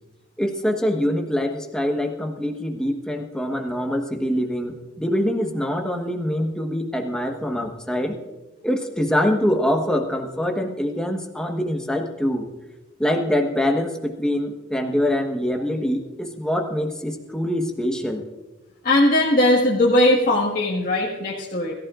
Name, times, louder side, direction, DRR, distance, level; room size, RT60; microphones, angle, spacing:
voice 1, 0.4-8.2 8.6-12.5 13.0-18.2, equal, 5° left, 2 dB, 1.3 m, -24 dB
voice 2, 18.8-21.7, left 1 dB, 45° left, -5 dB, 1.7 m, -19 dB
22.0 x 14.5 x 2.5 m, 1.2 s
head